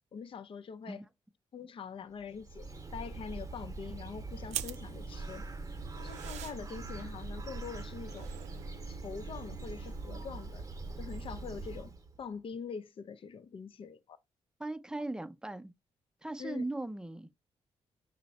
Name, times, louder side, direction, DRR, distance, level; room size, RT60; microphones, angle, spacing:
voice 1, 0.1-1.0 1.5-5.5 6.0-8.3 8.9-10.7 11.0-14.2 16.4-16.6, left 6 dB, 50° left, 0.5 m, -44 dB
Bird, 2.2-12.2, right 3 dB, 30° right, 0.9 m, -43 dB
sound 1, 4.5-10.2, right 11 dB, 85° right, 0.4 m, -46 dB
voice 2, 14.6-15.7 16.2-17.3, right 2 dB, 5° right, 0.6 m, -38 dB
5.4 x 2.1 x 4.0 m
cardioid pair, 70°, 11 cm